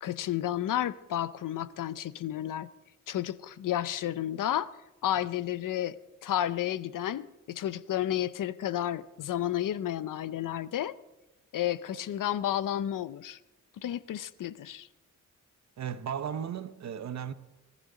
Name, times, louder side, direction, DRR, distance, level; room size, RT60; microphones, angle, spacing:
voice 1, 0.0-2.7 3.1-4.7 5.0-10.9 11.5-13.4 13.8-14.9, left 11 dB, 80° left, 0.6 m, -31 dB
voice 2, 15.8-17.3, right 8 dB, 60° right, 0.8 m, -35 dB
21.0 x 14.5 x 3.8 m
wide cardioid pair, 165°, 32 cm